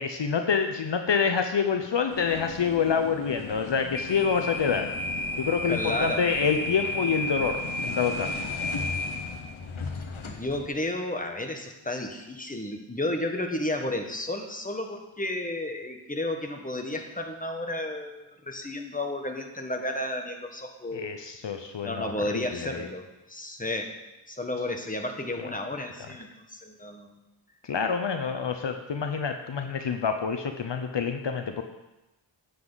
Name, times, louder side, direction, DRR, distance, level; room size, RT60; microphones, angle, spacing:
voice 1, 0.0-4.9 5.4-8.4 20.9-22.9 27.6-31.6, left 6 dB, 65° left, 6 dB, 0.8 m, -27 dB
sound 1, 2.1-10.7, left 2 dB, 85° left, 1.1 m, -33 dB
voice 2, 5.6-6.3 10.2-21.2 21.8-23.9 24.3-27.2, left 1 dB, 15° left, 3 dB, 1.5 m, -32 dB
9.5 x 9.3 x 4.0 m, 0.99 s
cardioid pair, 40°, 47 cm